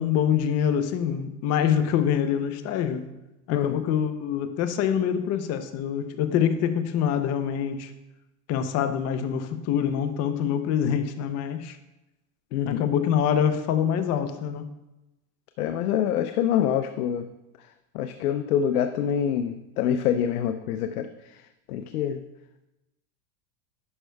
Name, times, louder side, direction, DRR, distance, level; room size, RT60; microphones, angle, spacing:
voice 1, 0.0-3.1 3.5-7.9 8.5-11.8 12.7-14.7, left 8 dB, 35° left, 10 dB, 0.6 m, -25 dB
voice 2, 3.5-3.8 12.5-12.9 15.6-17.3 17.6-17.7 17.9-22.2, left 9 dB, 90° left, 8 dB, 0.6 m, -26 dB
11.0 x 6.4 x 2.3 m, 0.97 s
supercardioid pair, 130°, 43 cm